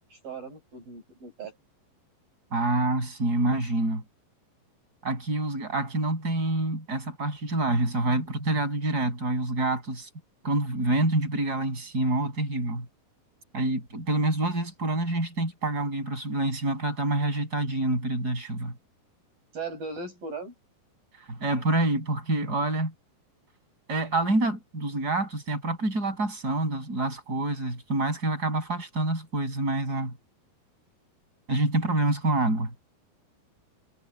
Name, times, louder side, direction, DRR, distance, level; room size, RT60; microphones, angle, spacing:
voice 1, 0.1-1.6 19.5-20.5, right 4 dB, 65° right, 7.5 m, -38 dB
voice 2, 2.5-4.0 5.0-10.1 10.4-12.9 13.5-18.7 21.2-22.9 23.9-30.2 31.5-32.7, right 2 dB, 25° right, 7.9 m, -27 dB
omnidirectional pair, 4.3 m